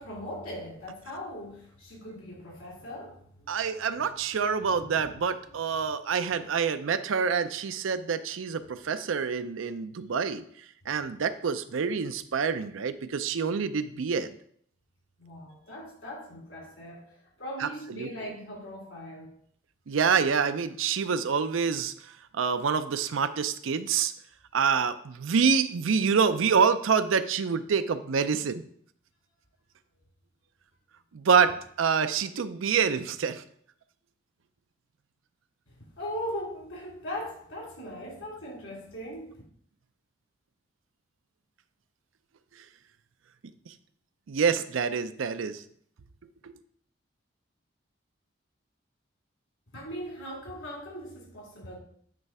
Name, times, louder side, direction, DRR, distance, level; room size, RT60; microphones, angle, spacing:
voice 1, 0.0-3.6 3.9-4.1 4.7-5.2 5.7-5.9 6.3-6.4 15.2-19.3 35.7-39.4 49.7-51.8, equal, 80° left, 3.2 m, -40 dB
voice 2, 3.5-10.4 10.9-14.3 17.6-17.7 18.0-18.1 19.9-21.9 22.3-24.1 24.5-28.6 31.1-33.4 43.7-43.8 44.3-45.6 46.4-46.5, right 6 dB, 80° right, 0.5 m, -26 dB
9.2 x 3.2 x 4.7 m
head